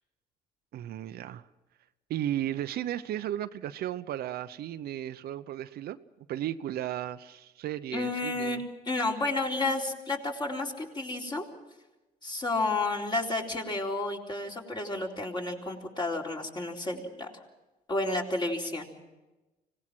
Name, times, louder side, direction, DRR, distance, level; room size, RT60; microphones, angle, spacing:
voice 1, 0.7-1.4 2.1-6.0 6.3-8.6, right 12 dB, 65° right, 11 dB, 0.8 m, -34 dB
voice 2, 7.9-8.6 8.9-11.5 12.2-17.3 17.9-18.9, left 2 dB, 25° left, 0 dB, 3.9 m, -31 dB
25.0 x 18.5 x 6.1 m, 1.1 s
cardioid pair, 110°, 17 cm